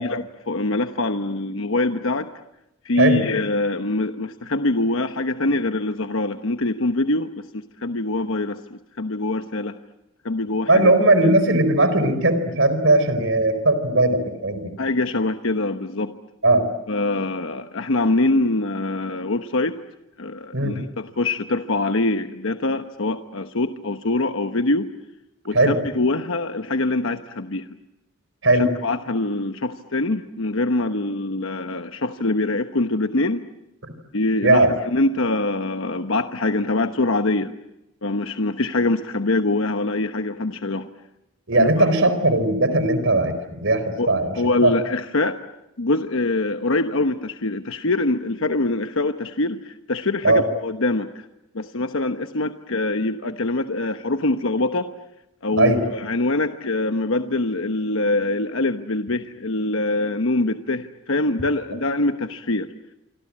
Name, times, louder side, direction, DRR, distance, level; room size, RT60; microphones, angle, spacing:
voice 1, 0.0-2.3 2.8-8.6 9.0-9.8 10.2-11.3 14.8-16.2 16.9-19.8 20.2-24.9 25.4-27.7 28.5-33.5 34.1-37.5 38.0-40.9 41.5-41.7 44.0-44.1 44.4-45.4 45.8-51.2 51.5-54.9 55.4-62.7, left 2 dB, 65° left, 8 dB, 1.1 m, -24 dB
voice 2, 10.7-14.8 16.4-16.6 20.5-20.8 25.5-25.8 28.4-28.7 33.8-33.9 34.4-34.7 41.5-44.4 44.6-44.7 50.2-50.4 55.5-55.8, right 2 dB, 60° right, 11 dB, 4.5 m, -18 dB
27.0 x 25.5 x 8.7 m, 0.91 s
head